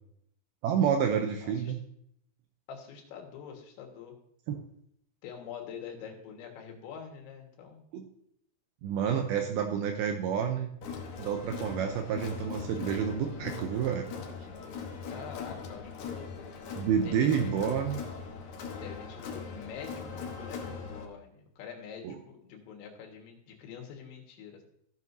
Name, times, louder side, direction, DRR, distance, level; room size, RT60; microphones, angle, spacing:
voice 1, 0.6-1.8 4.5-4.6 7.9-8.1 8.8-10.7 11.2-14.1 16.8-18.0 22.0-22.2, right 8 dB, 85° right, 5 dB, 2.2 m, -29 dB
voice 2, 1.4-1.8 2.7-4.1 5.2-7.8 15.1-16.3 17.0-17.8 18.8-24.6, left 7 dB, 90° left, 2 dB, 3.8 m, -45 dB
Crowd, 10.8-21.1, left 5 dB, 70° left, 1.8 m, -40 dB
14.5 x 7.5 x 2.7 m, 0.71 s
omnidirectional pair, 5.0 m